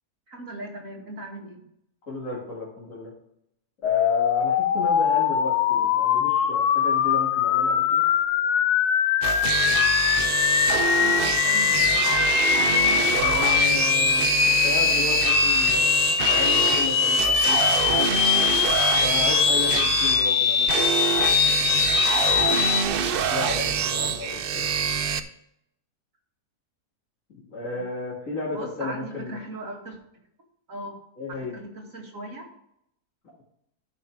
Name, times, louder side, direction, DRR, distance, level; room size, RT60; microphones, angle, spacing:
voice 1, 0.3-1.6 11.0-12.1 28.5-30.0 30.7-31.0 31.5-32.5, right 1 dB, 55° right, -1 dB, 2.6 m, -38 dB
voice 2, 2.1-3.1 3.8-8.0 13.0-16.0 16.3-18.1 19.0-20.7 23.3-24.6 27.5-29.4 31.2-31.5, left 3 dB, 55° left, -5 dB, 2.7 m, -33 dB
sound 1, 3.8-22.9, left 9 dB, 80° left, 1.2 m, -22 dB
sound 2, 9.2-25.2, right 7 dB, 75° right, 0.5 m, -26 dB
12.5 x 5.2 x 4.6 m, 0.76 s
omnidirectional pair, 1.7 m